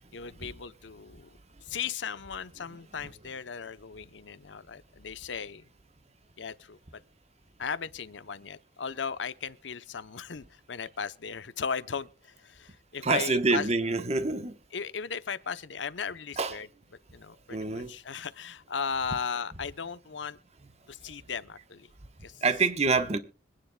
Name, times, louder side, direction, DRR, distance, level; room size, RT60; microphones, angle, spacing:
voice 1, 0.1-5.6 6.4-6.8 7.6-13.7 14.7-16.7 17.1-20.4 20.9-21.9 22.2-22.4, left 6 dB, 75° left, 0.7 m, -37 dB
voice 2, 13.0-14.5 16.4-16.6 17.5-17.9 22.4-23.2, right 3 dB, 35° right, 1.0 m, -26 dB
25.5 x 9.6 x 2.2 m
head